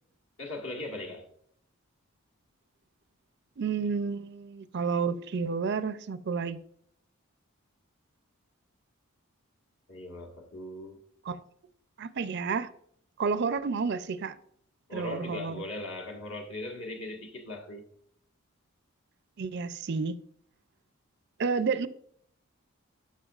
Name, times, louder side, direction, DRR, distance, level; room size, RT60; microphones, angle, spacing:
voice 1, 0.4-1.3 9.9-11.0 14.9-17.8, left 2 dB, 60° left, 1.6 m, -39 dB
voice 2, 3.6-6.6 11.2-11.4 12.0-12.7 13.2-14.4 14.9-15.6 19.4-20.2 21.4-21.9, right 5 dB, 50° right, 0.4 m, -30 dB
12.0 x 5.7 x 2.4 m
head